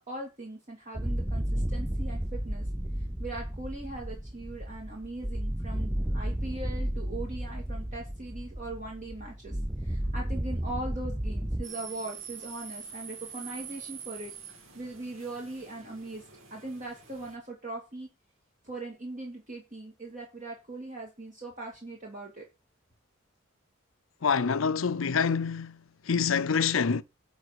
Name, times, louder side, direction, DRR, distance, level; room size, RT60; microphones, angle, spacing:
voice 1, 0.0-2.6 3.2-9.6 9.8-14.3 14.7-16.2 16.5-18.1 18.6-22.5, right 2 dB, 40° right, 2.4 m, -40 dB
sound 1, 1.0-11.7, equal, 10° right, 0.4 m, -33 dB
sound 2, 11.6-17.4, right 7 dB, 75° right, 2.1 m, -45 dB
voice 2, 24.2-27.0, left 6 dB, 75° left, 0.6 m, -26 dB
11.0 x 4.0 x 6.8 m
head